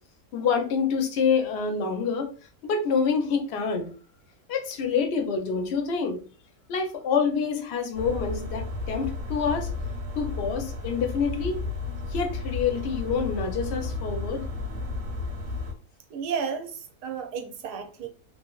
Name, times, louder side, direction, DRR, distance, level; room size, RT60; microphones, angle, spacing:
voice 1, 0.3-2.3 2.6-3.9 4.5-6.2 6.7-9.7 10.2-11.6 12.1-14.5, left 5 dB, 60° left, 0.7 m, -27 dB
sound 1, 7.9-15.7, left 3 dB, 40° right, 1.0 m, -33 dB
voice 2, 16.1-18.1, right 6 dB, 85° right, 1.1 m, -32 dB
3.2 x 2.6 x 2.3 m
omnidirectional pair, 1.7 m